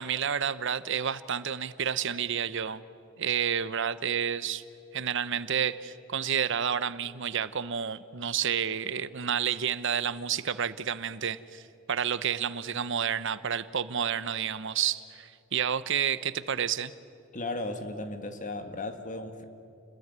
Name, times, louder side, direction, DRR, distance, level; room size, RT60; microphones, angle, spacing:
voice 1, 0.0-2.8 3.2-4.6 4.9-16.9, right 8 dB, 65° right, 15 dB, 0.9 m, -30 dB
voice 2, 17.3-19.4, left 2 dB, 40° left, 7 dB, 1.8 m, -35 dB
29.5 x 21.0 x 9.5 m, 2.5 s
head